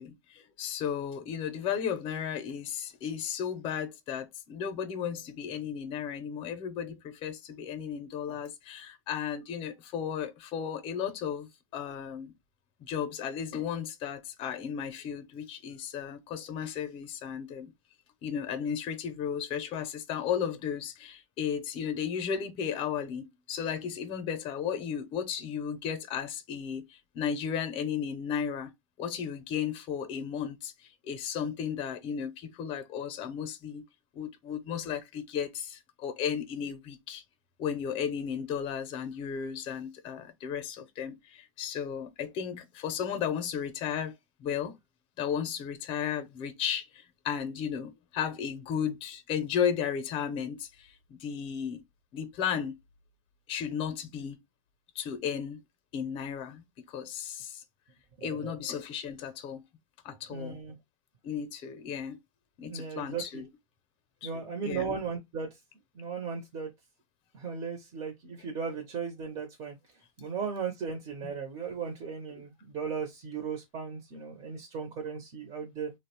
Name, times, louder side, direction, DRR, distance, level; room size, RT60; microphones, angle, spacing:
voice 1, 0.0-12.3 12.8-17.7 18.2-28.7 29.0-30.7 31.0-33.8 34.2-37.2 37.6-44.1 44.4-44.8 45.2-51.8 52.1-52.7 53.5-54.4 55.0-55.6 55.9-57.6 58.2-59.6 60.0-60.6 61.2-62.2 62.6-63.5 64.2-65.0 71.2-71.3, left 8 dB, 30° left, 0.5 m, -34 dB
voice 2, 58.2-58.5 60.3-60.8 62.7-63.4 64.2-65.5 66.0-66.7 67.3-69.8 70.2-75.9, right 6 dB, 35° right, 0.6 m, -36 dB
2.5 x 2.0 x 2.8 m
supercardioid pair, 145°, 17 cm